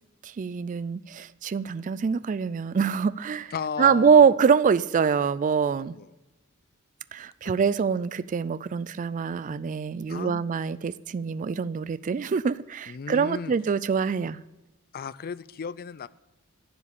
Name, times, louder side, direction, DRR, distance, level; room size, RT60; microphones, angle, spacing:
voice 1, 0.2-3.5 3.8-5.9 7.1-14.4, right 6 dB, 35° right, 16 dB, 0.3 m, -24 dB
voice 2, 3.5-4.3 5.7-6.1 7.4-7.6 10.1-10.4 12.9-13.5 14.9-16.1, left 6 dB, 45° left, 18 dB, 0.4 m, -35 dB
11.0 x 7.4 x 8.2 m, 1.0 s
head